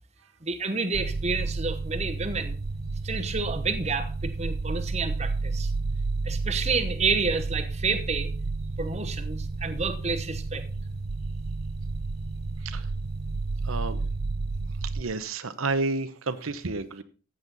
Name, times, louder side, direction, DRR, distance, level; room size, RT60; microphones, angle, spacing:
voice 1, 0.4-2.6 3.0-5.7 6.2-8.3 8.8-10.6, right 4 dB, 30° right, 1.0 m, -29 dB
sound 1, 0.9-15.0, right 3 dB, 45° right, 0.5 m, -31 dB
voice 2, 13.6-14.0 14.9-17.0, right 3 dB, 80° right, 0.9 m, -30 dB
14.5 x 8.8 x 4.0 m
head